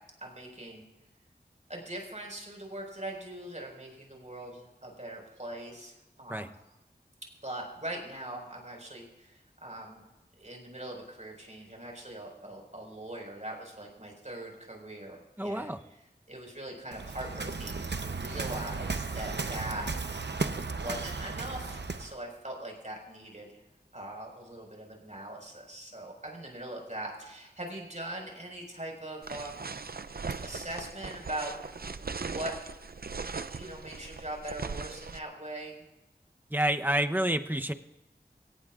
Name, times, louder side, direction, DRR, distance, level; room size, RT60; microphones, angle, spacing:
voice 1, 0.2-0.8 1.7-6.5 7.4-10.0 10.4-15.8 16.3-20.0 20.8-23.6 23.9-29.7 30.4-32.6 33.5-35.9, right 1 dB, 45° right, 0 dB, 5.1 m, -41 dB
voice 2, 15.4-15.8 36.5-37.7, right 1 dB, 10° right, 7 dB, 0.8 m, -28 dB
Waves surf, 16.9-22.1, right 4 dB, 90° right, 0.8 m, -35 dB
sound 1, 29.2-35.2, right 4 dB, 60° right, 0.5 m, -39 dB
23.0 x 18.0 x 2.5 m, 1.0 s
wide cardioid pair, 45°, 17 cm